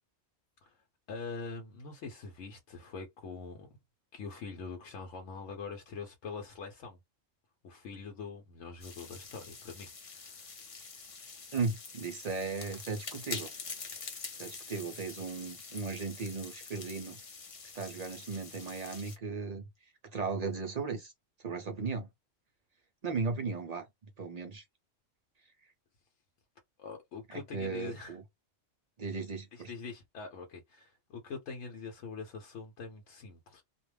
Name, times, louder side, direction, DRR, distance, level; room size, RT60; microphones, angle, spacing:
voice 1, 1.1-3.7 4.1-7.0 7.6-10.5 26.8-28.2 29.5-33.6, left 4 dB, 80° left, 1.0 m, -44 dB
sound 1, 8.8-19.2, left 4 dB, 45° left, 0.4 m, -46 dB
voice 2, 11.5-13.5 14.4-17.2 17.7-19.6 20.0-21.1 21.4-22.1 23.0-23.8 24.2-24.6 27.3-28.2 29.0-29.7, right 4 dB, 60° right, 0.4 m, -36 dB
2.4 x 2.1 x 3.1 m
omnidirectional pair, 1.3 m